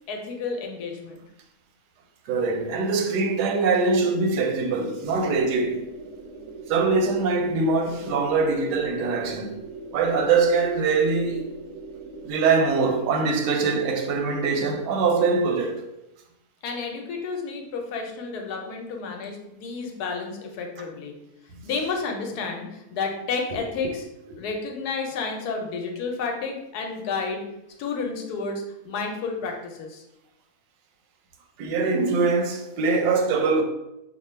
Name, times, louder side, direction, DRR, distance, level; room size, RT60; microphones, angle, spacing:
voice 1, 0.1-1.2 16.6-21.1 21.6-24.0 24.4-27.4 27.8-30.0, left 4 dB, 75° left, 1.1 m, -31 dB
voice 2, 2.3-5.9 6.7-9.6 9.9-11.5 12.2-15.8 23.5-23.6 31.6-33.6, right 4 dB, 90° right, 1.2 m, -23 dB
sound 1, 5.0-12.3, right 2 dB, 70° right, 0.9 m, -40 dB
2.9 x 2.2 x 4.2 m
omnidirectional pair, 1.7 m